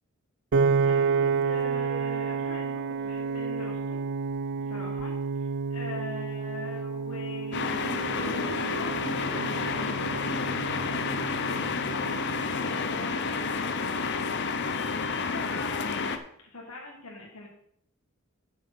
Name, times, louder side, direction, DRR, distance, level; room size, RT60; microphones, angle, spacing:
Piano, 0.5-12.8, right 5 dB, 55° right, 0.4 m, -30 dB
voice 1, 0.8-4.0 4.7-13.6 14.0-16.1 16.4-17.5, left 2 dB, 85° left, -1 dB, 1.6 m, -43 dB
sound 1, 7.5-16.2, left 4 dB, 50° left, 0.7 m, -30 dB
8.2 x 6.4 x 6.0 m, 0.71 s
head